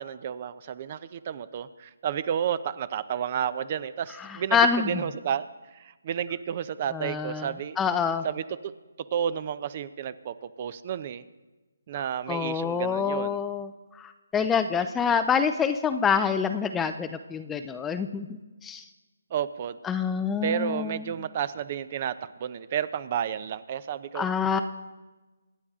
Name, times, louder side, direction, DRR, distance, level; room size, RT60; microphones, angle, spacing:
voice 1, 0.0-7.8 8.2-11.2 11.9-13.4 19.3-19.8 20.4-24.3, right 9 dB, 35° right, 15 dB, 0.7 m, -31 dB
voice 2, 4.5-5.0 6.9-7.5 7.8-8.2 12.3-13.7 14.0-18.8 19.8-21.1 24.1-24.6, left 6 dB, 10° left, 9 dB, 0.5 m, -26 dB
25.5 x 9.8 x 3.7 m, 1.1 s
hypercardioid pair, 160°, 0 cm